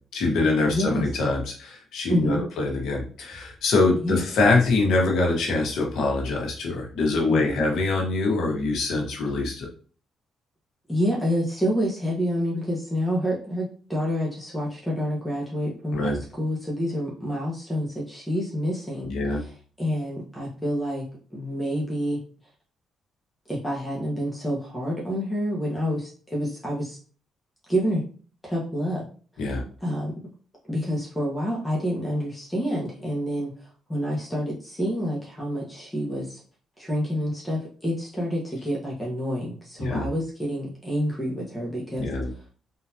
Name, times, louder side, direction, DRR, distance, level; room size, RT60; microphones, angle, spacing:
voice 1, 0.1-9.7 15.9-16.2 19.0-19.4 29.4-29.6 39.8-40.1 42.0-42.3, left 3 dB, 75° left, 0 dB, 1.3 m, -24 dB
voice 2, 0.7-1.0 2.1-2.4 4.0-4.2 7.3-7.6 10.9-19.1 19.4-19.5 19.8-21.1 21.3-22.2 23.5-27.0 27.7-28.0 28.4-29.0 29.8-30.1 30.7-33.5 33.9-36.4 36.8-42.1, equal, 10° left, -4 dB, 1.3 m, -28 dB
3.9 x 2.9 x 2.9 m, 0.40 s
cardioid pair, 90°, 0 cm